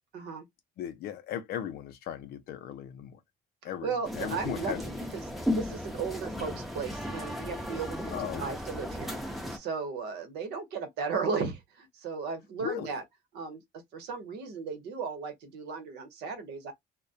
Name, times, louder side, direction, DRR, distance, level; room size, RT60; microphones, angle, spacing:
voice 1, 0.1-0.5 3.8-5.2 5.5-8.1 8.4-9.2 9.5-13.0 13.3-13.6 13.9-16.7, right 5 dB, 80° right, 0.9 m, -35 dB
voice 2, 0.8-3.2 3.6-4.8 6.3-6.6 8.1-8.4 12.6-12.9, left 10 dB, 70° left, 0.6 m, -37 dB
sound 1, 4.0-9.6, left 1 dB, ahead, 0.6 m, -35 dB
2.2 x 2.1 x 2.6 m
cardioid pair, 110°, 17 cm